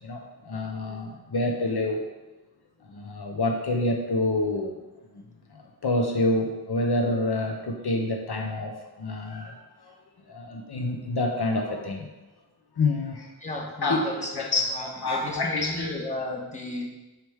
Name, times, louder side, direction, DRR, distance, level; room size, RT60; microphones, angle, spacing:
voice 1, 0.0-2.0 2.8-4.7 5.1-5.2 5.5-9.9 10.3-12.1 12.8-13.3 13.8-16.0, left 2 dB, 75° left, 2 dB, 0.7 m, -28 dB
voice 2, 13.4-16.9, left 2 dB, 20° left, -1 dB, 1.3 m, -34 dB
6.2 x 4.9 x 3.5 m, 1.1 s
wide cardioid pair, 40°, 39 cm